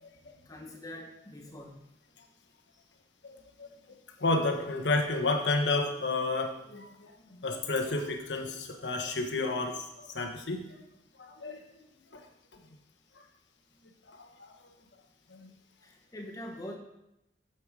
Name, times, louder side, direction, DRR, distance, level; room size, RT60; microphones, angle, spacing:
voice 1, 0.5-1.8 15.8-16.8, left 1 dB, 20° left, 1 dB, 1.0 m, -44 dB
voice 2, 3.2-3.7 4.2-10.8 11.2-11.7 12.1-12.3 12.5-12.6 14.1-14.5 15.3-15.5, left 3 dB, 90° left, 4 dB, 1.2 m, -31 dB
8.5 x 7.2 x 4.8 m, 0.86 s
head